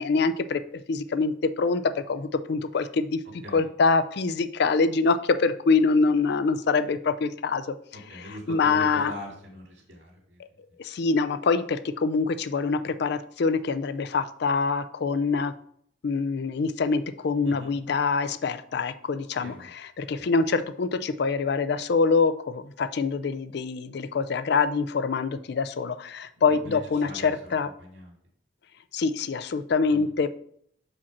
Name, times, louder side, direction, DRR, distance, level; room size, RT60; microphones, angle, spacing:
voice 1, 0.0-1.8 2.1-3.2 3.5-7.7 8.1-9.1 10.8-15.5 16.0-27.7 28.9-30.3, left 4 dB, 60° left, 11 dB, 0.4 m, -25 dB
voice 2, 7.9-10.4 17.5-17.7 19.4-19.6 20.2-20.3 26.3-26.8 27.0-27.5 27.8-28.1 29.9-30.1, equal, 65° right, 0 dB, 2.2 m, -41 dB
5.0 x 4.2 x 5.9 m, 0.66 s
head